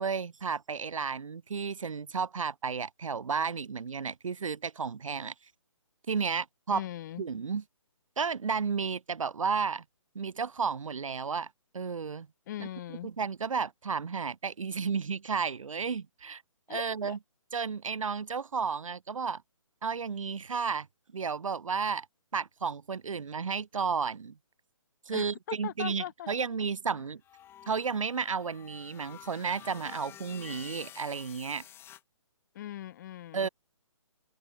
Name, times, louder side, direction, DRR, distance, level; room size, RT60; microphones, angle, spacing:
voice 1, 0.0-5.3 6.1-6.8 7.2-7.6 8.2-9.8 10.1-11.5 11.7-12.3 12.6-12.7 13.0-16.4 16.7-17.2 17.5-19.4 19.8-20.9 21.1-22.1 22.3-24.3 25.1-27.2 27.7-31.6 33.3-33.5, right 5 dB, 80° right, 0.6 m, -32 dB
voice 2, 6.7-7.2 12.5-13.1 16.7-17.2 25.1-26.3 32.5-33.5, left 12 dB, 35° left, 1.1 m, -40 dB
sound 1, 27.2-32.0, left 11 dB, 15° left, 3.3 m, -50 dB
figure-of-eight pair, 145°, 17 cm